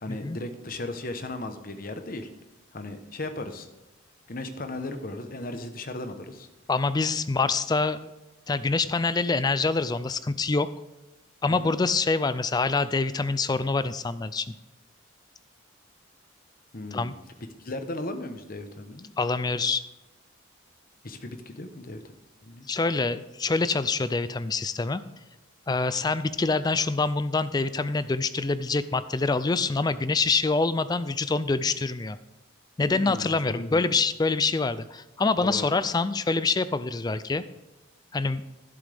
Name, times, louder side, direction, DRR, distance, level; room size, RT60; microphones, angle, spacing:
voice 1, 0.0-2.3 2.7-3.7 4.3-6.5 11.5-11.7 16.7-17.1 17.6-19.1 21.0-22.0 22.4-22.7 32.8-33.8 35.4-35.7, left 2 dB, 45° left, 7 dB, 1.0 m, -36 dB
voice 2, 6.7-8.1 8.5-10.7 11.4-14.5 16.9-17.1 19.2-19.8 22.7-25.0 25.7-32.2 32.8-37.4 38.1-38.4, left 3 dB, 20° left, 14 dB, 0.3 m, -25 dB
11.5 x 11.5 x 3.5 m, 1.0 s
head